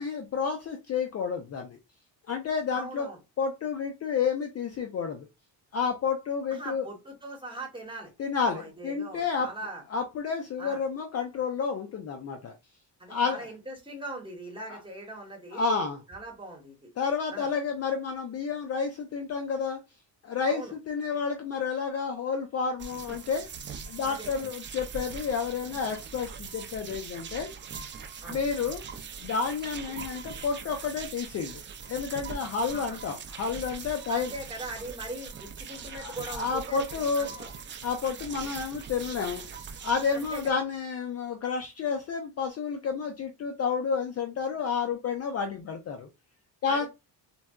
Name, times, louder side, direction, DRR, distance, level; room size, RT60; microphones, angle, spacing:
voice 1, 0.0-1.8 2.3-3.1 3.4-5.3 5.7-6.8 8.2-9.5 9.9-12.5 13.1-13.5 14.7-14.8 15.5-16.0 17.0-19.8 20.2-23.5 23.9-27.5 28.3-28.8 29.2-31.6 31.9-34.3 35.9-37.5 37.8-39.4 39.8-46.1 46.6-46.9, left 5 dB, 35° left, 0.4 m, -30 dB
voice 2, 2.7-3.2 6.5-8.1 8.5-9.8 10.6-10.8 13.0-15.7 16.1-16.9 17.3-17.5 20.5-20.7 24.0-24.3 28.2-28.4 32.7-33.0 34.1-37.5 40.1-40.6 46.7-46.9, right 1 dB, 10° right, 1.1 m, -41 dB
sound 1, 22.8-40.5, right 6 dB, 30° right, 0.4 m, -41 dB
4.0 x 2.2 x 2.3 m
cardioid pair, 125°, 43 cm